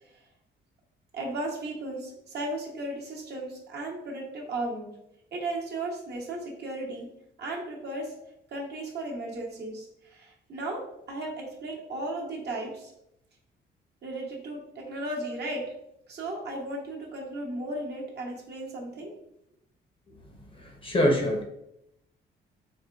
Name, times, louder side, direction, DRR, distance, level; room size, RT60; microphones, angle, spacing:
voice 1, 1.1-5.0 5.3-7.1 7.4-8.1 8.5-12.9 14.0-15.7 16.1-19.1, right 2 dB, 55° right, -2 dB, 0.9 m, -35 dB
voice 2, 20.8-21.4, equal, 25° left, 2 dB, 0.6 m, -23 dB
4.1 x 2.2 x 2.3 m, 0.79 s
cardioid pair, 90°, 20 cm